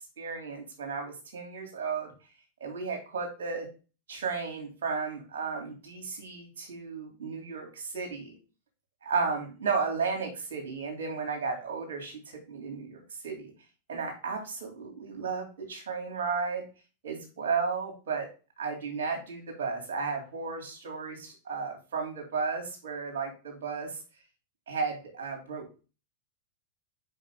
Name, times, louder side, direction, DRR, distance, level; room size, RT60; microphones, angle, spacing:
voice 1, 0.2-2.1 2.6-3.7 4.1-8.4 9.0-13.5 13.9-16.6 17.0-18.3 18.6-24.0 24.7-25.8, right 5 dB, 60° right, 2 dB, 2.5 m, -34 dB
5.6 x 5.1 x 3.6 m, 0.33 s
figure-of-eight pair, 90°, 0 cm